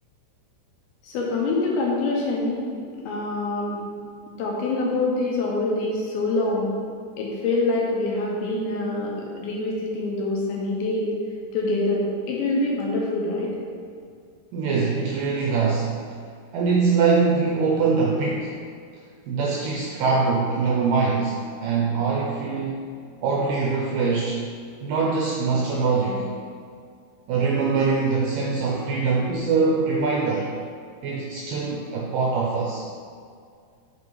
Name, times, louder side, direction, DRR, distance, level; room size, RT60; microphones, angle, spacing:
voice 1, 1.0-2.7 3.0-3.8 4.4-6.8 7.2-11.2 11.5-13.6, left 2 dB, 75° left, -2 dB, 2.9 m, -25 dB
voice 2, 14.5-15.9 16.5-18.5 19.3-22.9 23.2-24.4 24.8-26.3 27.3-30.5 31.0-32.9, right 4 dB, 80° right, -3 dB, 2.0 m, -23 dB
7.0 x 5.2 x 4.8 m, 2.2 s
omnidirectional pair, 4.7 m